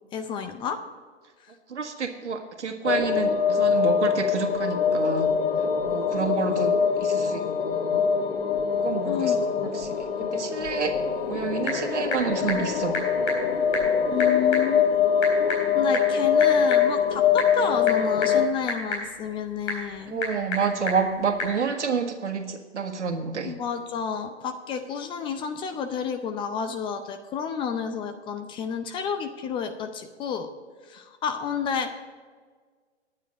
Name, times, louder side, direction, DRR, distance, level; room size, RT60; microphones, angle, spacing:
voice 1, 0.1-0.8 9.0-9.4 14.1-14.9 15.7-20.2 23.4-30.5 30.9-32.0, left 7 dB, 15° left, 8 dB, 0.5 m, -30 dB
voice 2, 1.7-5.4 5.8-8.0 8.8-9.3 9.6-10.9 11.3-13.0 20.0-23.5, right 5 dB, 80° right, 6 dB, 1.7 m, -29 dB
sound 1, 2.8-18.5, left 7 dB, 60° left, 1.3 m, -23 dB
Typing / Telephone, 11.1-21.6, left 2 dB, 35° left, 4.2 m, -34 dB
11.5 x 9.5 x 5.1 m, 1.5 s
hypercardioid pair, 130°, 35 cm